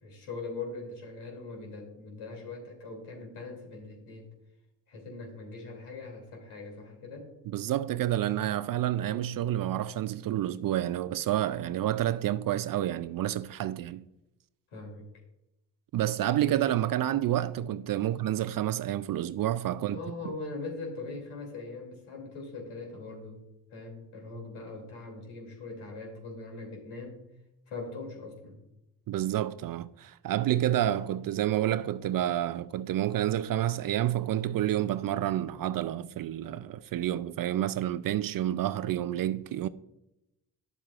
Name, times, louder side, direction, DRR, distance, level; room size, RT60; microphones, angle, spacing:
voice 1, 0.0-4.3 4.9-7.3 14.7-15.0 18.0-18.1 19.7-23.4 23.7-27.3 27.7-28.6, left 3 dB, 75° left, 2.9 m, -41 dB
voice 2, 7.5-14.0 15.9-20.0 20.2-20.3 29.1-39.7, right 12 dB, 45° right, 0.4 m, -29 dB
10.5 x 7.4 x 2.4 m
supercardioid pair, 55°, 49 cm